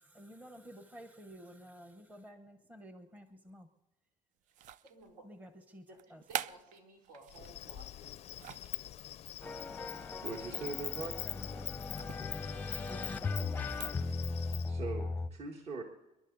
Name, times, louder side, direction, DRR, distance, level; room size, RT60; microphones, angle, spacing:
voice 1, 0.0-3.7 5.2-6.2 11.2-12.4, equal, 10° right, 7 dB, 1.0 m, -53 dB
sound 1, 4.5-5.1 6.0-7.5 8.1-8.8 10.3-10.9 11.1-11.3 11.9-12.2 13.5-14.0, right 11 dB, 60° right, 0.4 m, -44 dB
voice 2, 4.9-5.2 5.9-8.2, right 2 dB, 80° right, 0 dB, 4.6 m, -56 dB
Insect, 7.3-14.7, left 12 dB, 45° left, 0.4 m, -44 dB
sound 2, 9.4-15.3, left 3 dB, 10° left, 0.7 m, -38 dB
voice 3, 10.2-11.2 14.7-15.8, right 3 dB, 45° right, 2 dB, 1.6 m, -41 dB
29.5 x 11.0 x 4.0 m, 0.99 s
cardioid pair, 170°, 15 cm